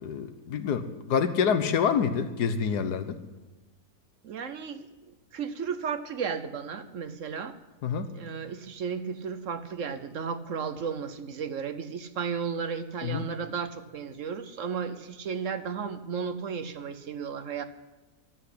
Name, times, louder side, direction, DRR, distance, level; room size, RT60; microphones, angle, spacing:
voice 1, 0.0-3.2 7.8-8.1 13.0-13.3, left 6 dB, 80° left, 10 dB, 1.6 m, -27 dB
voice 2, 4.2-4.9 5.3-7.6 8.1-17.6, right 6 dB, 60° right, 11 dB, 1.0 m, -34 dB
12.5 x 8.2 x 9.9 m, 1.2 s
omnidirectional pair, 1.7 m